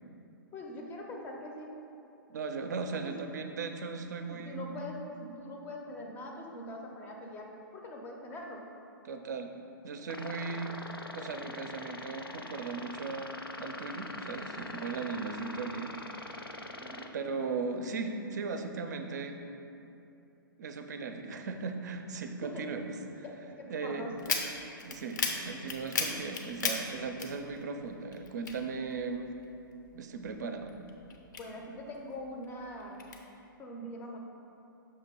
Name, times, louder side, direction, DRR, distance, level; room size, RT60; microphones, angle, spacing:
voice 1, 0.5-1.8 2.9-3.1 4.3-8.7 16.8-17.1 22.4-22.8 23.2-24.4 31.1-33.1 33.6-34.2, left 1 dB, 15° left, 0 dB, 0.6 m, -43 dB
voice 2, 2.3-4.7 9.0-9.5 9.8-10.8 11.1-13.3 13.6-15.9 17.1-19.4 20.6-22.9 23.2-23.3 23.7-24.2 24.8-29.3 29.9-30.7, right 4 dB, 50° right, 6 dB, 0.5 m, -37 dB
sound 1, 10.1-17.1, left 2 dB, 90° left, 0.4 m, -43 dB
sound 2, 24.2-27.9 28.1-29.4 29.9-32.0 32.4-33.2, left 4 dB, 55° left, 0.7 m, -35 dB
6.5 x 2.9 x 5.3 m, 2.8 s
figure-of-eight pair, 120°, 12 cm